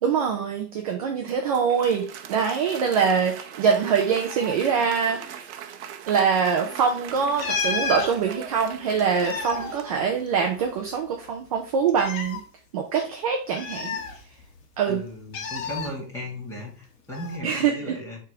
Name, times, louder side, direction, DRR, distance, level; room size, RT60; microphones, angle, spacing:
voice 1, 0.0-5.5 6.1-12.4 12.7-14.0 14.8-15.0 17.4-18.0, right 6 dB, 25° right, 2 dB, 0.4 m, -24 dB
Applause, 1.0-10.6, right 9 dB, 45° right, 0.8 m, -41 dB
sound 1, 7.4-8.1 9.0-10.7 11.0-11.1 11.9-12.4 13.5-14.6 15.3-15.9 17.1-17.4, left 4 dB, 55° left, 1.5 m, -30 dB
voice 2, 14.9-18.2, left 1 dB, 5° left, -3 dB, 1.8 m, -36 dB
5.5 x 3.5 x 4.9 m, 0.41 s
supercardioid pair, 150°, 48 cm